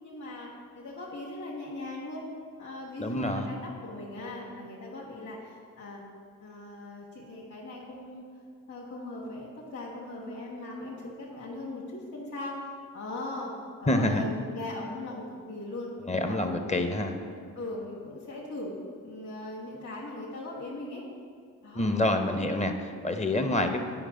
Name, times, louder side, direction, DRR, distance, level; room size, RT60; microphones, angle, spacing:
voice 1, 0.0-2.3 2.6-3.6 3.8-6.0 6.4-8.2 8.7-12.7 12.9-13.5 13.8-15.9 16.2-17.2 17.5-21.0 21.6-21.9, left 2 dB, 45° left, -5 dB, 1.8 m, -39 dB
voice 2, 3.0-3.5 13.9-14.2 16.1-17.1 21.7-23.8, left 1 dB, 20° left, 6 dB, 0.8 m, -27 dB
9.1 x 4.8 x 3.8 m, 2.2 s
hypercardioid pair, 45°, 37 cm